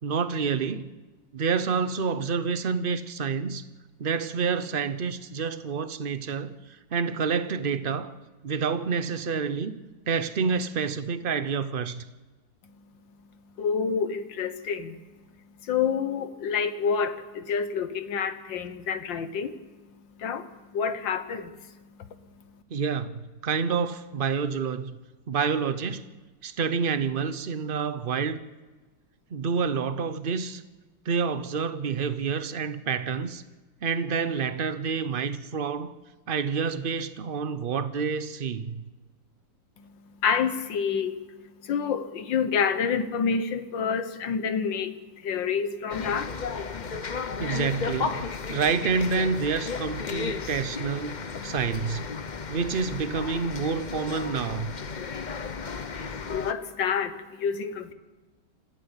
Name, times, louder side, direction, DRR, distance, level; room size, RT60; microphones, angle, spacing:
voice 1, 0.0-0.9 1.3-3.6 4.0-6.5 6.9-8.1 8.4-9.8 10.1-12.0 22.7-25.0 25.3-26.0 26.4-28.4 29.3-30.6 31.1-33.4 33.8-35.9 36.3-38.7 47.4-51.2 51.4-52.0 52.5-54.7, right 5 dB, 55° right, 0.5 m, -28 dB
voice 2, 13.6-15.0 15.6-19.6 20.1-22.5 39.8-46.4 46.7-47.3 50.4-50.5 51.3-51.4 52.3-52.5 54.9-57.9, left 6 dB, 80° left, 1.9 m, -29 dB
sound 1, 45.9-56.5, left 5 dB, 45° left, 0.5 m, -34 dB
26.5 x 15.5 x 7.2 m
omnidirectional pair, 2.0 m